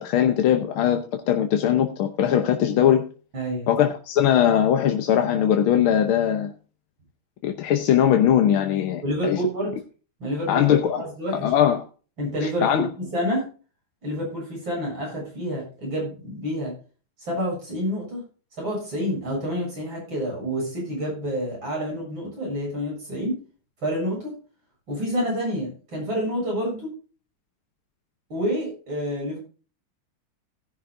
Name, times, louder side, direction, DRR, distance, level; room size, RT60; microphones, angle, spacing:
voice 1, 0.0-3.0 3.7-6.5 7.4-9.4 10.5-11.0 11.4-11.8 12.4-12.9, left 10 dB, 85° left, 1.8 m, -20 dB
voice 2, 3.3-3.7 9.0-9.7 10.2-11.5 12.2-13.5 14.0-16.7 17.2-18.2 18.6-23.3 23.8-24.3 24.9-26.9 28.3-29.4, equal, 70° right, 8.2 m, -28 dB
17.0 x 10.5 x 2.6 m
omnidirectional pair, 2.2 m